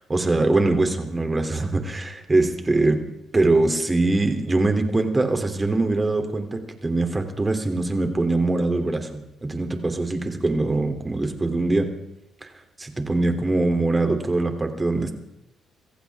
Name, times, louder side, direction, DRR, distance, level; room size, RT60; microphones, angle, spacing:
voice 1, 0.0-3.0 3.3-11.9 12.4-12.5 12.8-15.1, right 2 dB, 20° right, 5 dB, 3.0 m, -22 dB
25.5 x 15.0 x 3.6 m, 0.83 s
cardioid pair, 90°, 0 cm